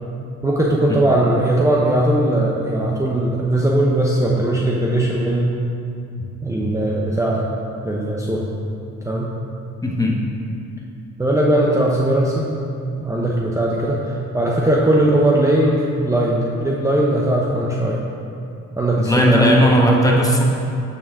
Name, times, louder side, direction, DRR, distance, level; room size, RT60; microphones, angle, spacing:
voice 1, 0.4-5.5 6.4-7.5 7.8-8.5 9.0-9.3 11.2-12.5 13.0-18.0 18.8-20.3, right 1 dB, 10° right, -3 dB, 0.8 m, -19 dB
voice 2, 9.8-10.2 18.9-20.4, left 1 dB, 10° left, -2 dB, 1.2 m, -17 dB
9.0 x 6.4 x 3.7 m, 2.6 s
cardioid pair, 90°, 30 cm